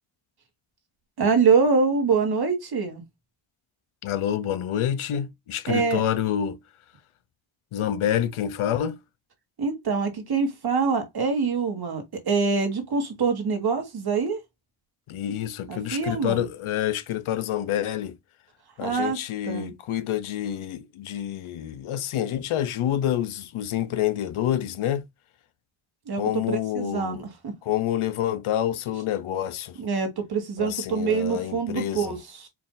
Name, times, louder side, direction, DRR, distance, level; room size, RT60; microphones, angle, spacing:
voice 1, 1.2-3.0 5.7-6.0 9.6-14.4 15.7-16.4 18.8-19.2 19.4-19.7 26.1-26.2 26.5-27.5 29.8-32.5, right 5 dB, 50° right, 1.4 m, -25 dB
voice 2, 4.0-6.6 7.7-9.0 15.1-18.2 18.8-25.0 26.2-27.2 27.6-29.8 30.6-32.1, left 11 dB, 85° left, 0.7 m, -27 dB
4.6 x 2.5 x 3.7 m
wide cardioid pair, 160°, 48 cm